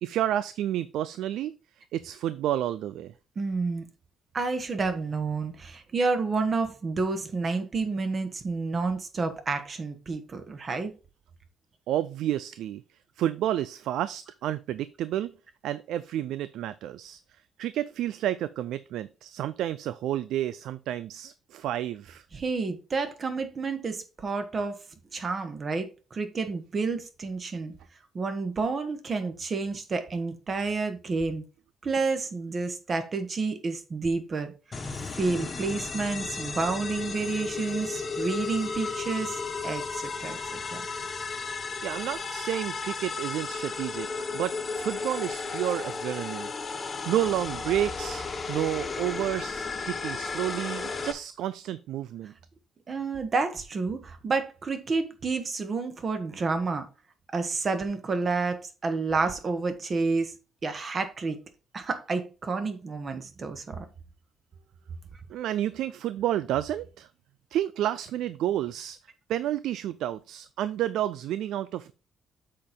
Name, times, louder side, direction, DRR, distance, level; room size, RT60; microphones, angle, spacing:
voice 1, 0.0-1.5 1.9-3.1 11.9-12.8 13.2-15.3 15.6-22.3 41.8-46.5 47.1-52.3 65.3-67.1 67.5-69.0 69.3-71.9, right 12 dB, 85° right, 0.4 m, -30 dB
voice 2, 3.3-3.9 4.3-10.9 22.3-24.8 25.1-27.7 28.1-31.4 31.8-34.5 35.2-40.8 52.9-56.9 57.3-60.3 60.6-61.4 61.7-63.9, right 4 dB, 40° right, 1.6 m, -30 dB
sound 1, 34.7-51.1, left 4 dB, 35° left, 1.2 m, -34 dB
7.4 x 4.5 x 5.2 m
cardioid pair, 90°, 0 cm